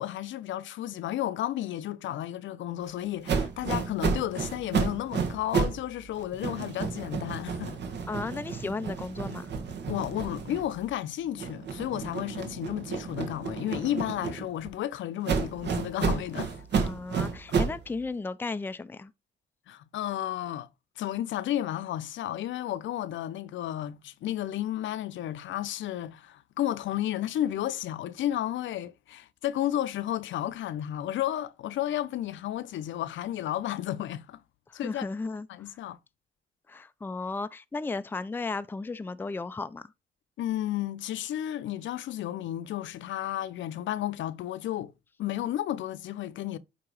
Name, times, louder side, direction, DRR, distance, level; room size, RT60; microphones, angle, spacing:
voice 1, 0.0-7.8 9.9-16.6 19.7-20.7 21.0-34.4 34.7-35.1 35.5-36.0 40.4-44.9 45.2-46.6, left 12 dB, 70° left, 0.6 m, -32 dB
sound 1, 3.3-5.9 6.2-10.9 11.4-14.7 15.2-17.8, right 5 dB, 60° right, 1.3 m, -31 dB
voice 2, 8.1-9.5 16.8-19.1 34.8-35.5 36.7-39.9, left 3 dB, 10° left, 0.4 m, -34 dB
8.5 x 2.9 x 4.8 m
cardioid pair, 90°, 20 cm